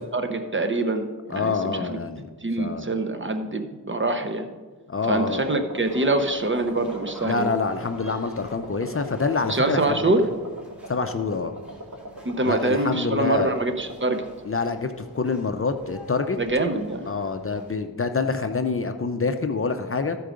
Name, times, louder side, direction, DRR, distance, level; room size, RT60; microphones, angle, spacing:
voice 1, 0.1-2.0 2.4-4.5 5.1-7.5 9.5-10.2 12.2-14.3 16.4-17.1, right 2 dB, 30° right, 7 dB, 0.8 m, -25 dB
voice 2, 1.3-2.3 2.6-2.9 4.9-5.5 7.2-10.2 10.9-11.5 12.5-13.5 14.5-16.4 17.1-20.2, left 4 dB, 35° left, 7 dB, 0.6 m, -26 dB
sound 1, 5.0-14.2, right 1 dB, 45° right, 1.7 m, -39 dB
sound 2, 5.8-17.8, equal, 5° right, 2.8 m, -49 dB
14.0 x 4.7 x 5.1 m, 1.4 s
wide cardioid pair, 75°, 39 cm